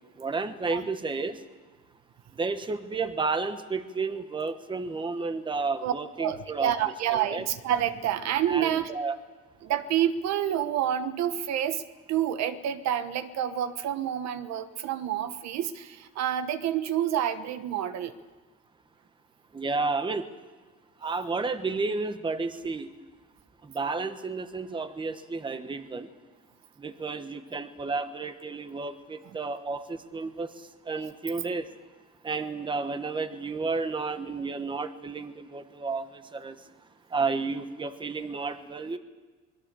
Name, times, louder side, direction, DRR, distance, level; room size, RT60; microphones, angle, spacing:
voice 1, 0.2-1.4 2.4-6.7 7.1-7.4 8.5-9.2 19.5-20.2 21.0-22.9 23.6-26.1 26.8-30.5 30.9-31.6 32.2-36.6 37.1-39.0, right 4 dB, 15° right, 10 dB, 1.1 m, -31 dB
voice 2, 6.2-8.9 9.6-11.8 12.1-18.1, right 10 dB, 65° right, 11 dB, 1.2 m, -28 dB
26.0 x 21.5 x 6.9 m, 1.3 s
cardioid pair, 150°, 29 cm